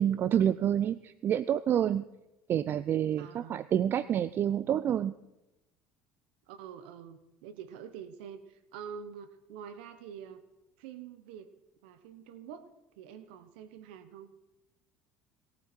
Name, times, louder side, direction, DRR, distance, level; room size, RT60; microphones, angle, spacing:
voice 1, 0.0-2.0 2.5-5.1, right 10 dB, 45° right, 17 dB, 0.5 m, -28 dB
voice 2, 3.2-3.7 6.5-10.4 10.8-11.5 11.8-12.7 13.0-14.3, right 8 dB, 85° right, 13 dB, 1.1 m, -46 dB
20.5 x 15.0 x 4.5 m, 0.95 s
supercardioid pair, 100°, 5 cm